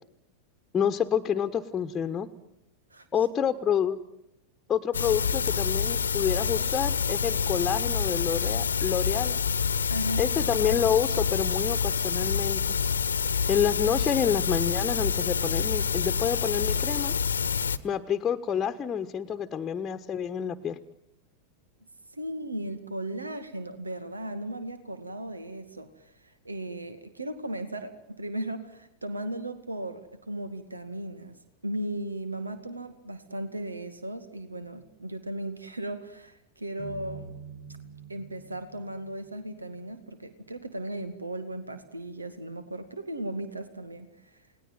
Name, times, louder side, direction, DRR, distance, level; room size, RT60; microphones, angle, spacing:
voice 1, 0.7-2.3 3.1-4.0 4.7-9.4 10.2-12.6 13.5-17.1 17.8-20.8, left 8 dB, 20° left, 8 dB, 1.3 m, -28 dB
sound 1, 4.9-17.8, left 6 dB, 70° left, 1.2 m, -27 dB
voice 2, 9.9-10.3 13.3-13.4 22.1-31.4 31.6-37.3 38.1-44.1, right 1 dB, 80° right, 11 dB, 2.2 m, -36 dB
sound 2, 36.8-40.0, right 5 dB, 60° right, 4.6 m, -45 dB
29.0 x 19.5 x 9.3 m, 0.84 s
figure-of-eight pair, 90°, 0 cm